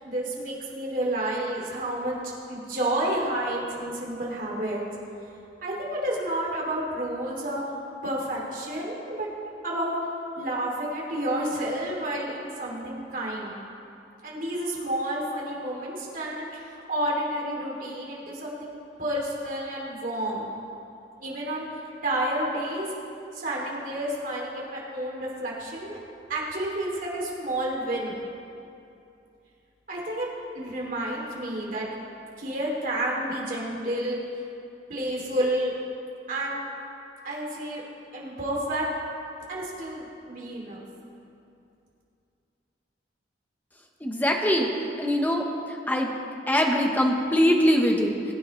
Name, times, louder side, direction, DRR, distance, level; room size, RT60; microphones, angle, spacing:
voice 1, 0.0-2.2 2.5-4.8 5.6-7.6 8.0-9.3 9.6-9.9 10.4-13.5 14.2-20.5 21.2-22.9 23.3-26.0 26.3-28.1 29.9-30.3 30.5-31.9 32.4-34.2 34.9-35.7 36.3-36.6 37.2-37.8 38.1-38.9 39.5-40.8, right 1 dB, 50° right, -3 dB, 2.8 m, -30 dB
voice 2, 44.0-44.7 45.0-46.1 46.5-48.3, equal, 10° left, 1 dB, 1.1 m, -23 dB
21.0 x 9.4 x 3.2 m, 2.6 s
head